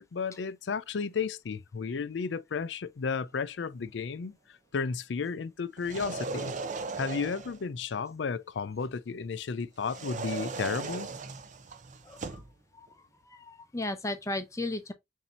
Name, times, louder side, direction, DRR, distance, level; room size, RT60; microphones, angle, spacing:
voice 1, 0.0-6.6 7.0-11.1, left 5 dB, 80° left, 0.5 m, -33 dB
sound 1, 5.8-7.6 9.8-12.5, right 4 dB, 45° right, 0.6 m, -37 dB
voice 2, 12.0-12.4 12.7-12.9 13.2-14.9, left 2 dB, 15° left, 0.6 m, -35 dB
7.2 x 2.8 x 2.7 m
head